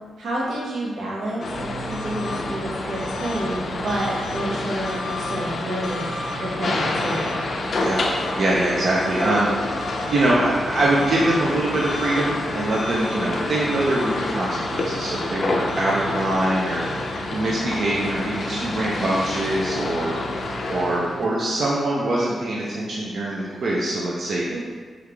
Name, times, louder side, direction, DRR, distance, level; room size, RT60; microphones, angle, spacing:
voice 1, 0.2-6.1 6.4-7.4 24.5-24.6, right 1 dB, 80° right, -4 dB, 1.0 m, -29 dB
sound 1, 1.4-21.3, left 2 dB, 50° left, 0.4 m, -28 dB
voice 2, 7.7-20.2 20.4-24.4, right 1 dB, 55° right, -6 dB, 0.5 m, -24 dB
3.6 x 3.2 x 3.4 m, 1.5 s
wide cardioid pair, 155°, 0 cm